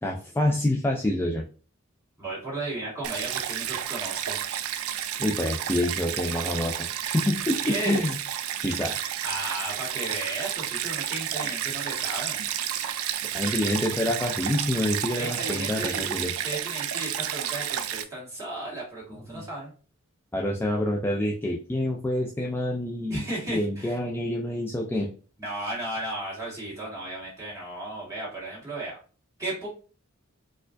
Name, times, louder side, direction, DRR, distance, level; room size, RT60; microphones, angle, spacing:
voice 1, 0.0-1.4 5.2-8.1 8.6-8.9 13.3-16.3 19.3-19.4 20.3-23.2 23.5-25.1, left 1 dB, 10° left, -1 dB, 0.3 m, -27 dB
voice 2, 2.2-4.4 7.6-8.0 9.2-12.4 15.2-19.7 23.1-24.0 25.4-29.0 29.4-29.7, right 2 dB, 15° right, -7 dB, 1.8 m, -34 dB
Stream, 3.0-18.0, right 10 dB, 85° right, 0.4 m, -31 dB
4.2 x 2.4 x 2.5 m, 0.38 s
head